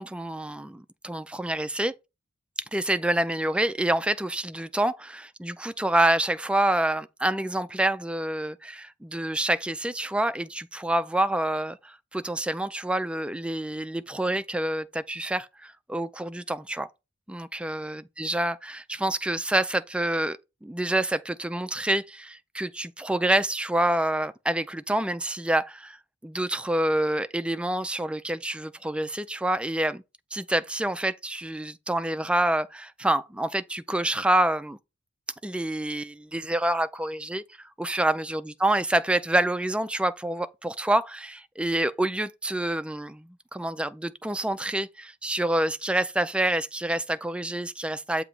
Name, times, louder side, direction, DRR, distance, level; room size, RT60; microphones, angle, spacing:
voice 1, 0.0-1.9 2.7-16.9 17.3-26.0 26.2-30.0 30.3-34.8 35.4-48.2, right 1 dB, 5° right, 0.3 m, -27 dB
7.3 x 2.8 x 5.3 m
head